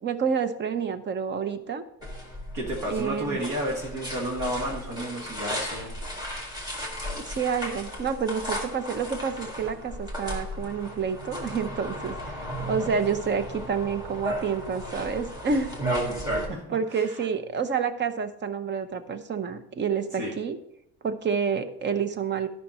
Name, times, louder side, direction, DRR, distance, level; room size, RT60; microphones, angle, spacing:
voice 1, 0.0-1.8 2.9-3.4 7.1-15.8 16.7-20.6 21.0-22.5, right 6 dB, 30° right, 11 dB, 0.7 m, -29 dB
sound 1, 2.0-16.5, equal, 10° right, 1.9 m, -35 dB
voice 2, 2.5-5.9 6.9-7.1 16.3-16.6 16.9-17.2 20.2-20.4, equal, 55° right, -1 dB, 1.8 m, -32 dB
12.5 x 5.8 x 4.3 m, 0.77 s
cardioid pair, 155°, 37 cm